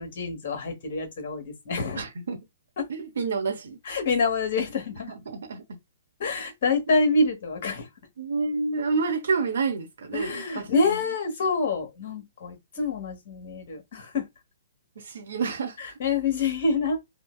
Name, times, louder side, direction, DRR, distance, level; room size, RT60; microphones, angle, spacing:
voice 1, 0.0-2.0 2.8-2.9 3.8-5.1 6.2-7.9 10.1-14.2 15.8-17.0, left 3 dB, 50° left, 1.0 m, -26 dB
voice 2, 2.0-2.4 2.9-3.8 5.1-5.6 8.2-11.0 15.0-15.9, right 4 dB, 60° right, 0.8 m, -29 dB
3.8 x 2.2 x 2.2 m
figure-of-eight pair, 115°, 0 cm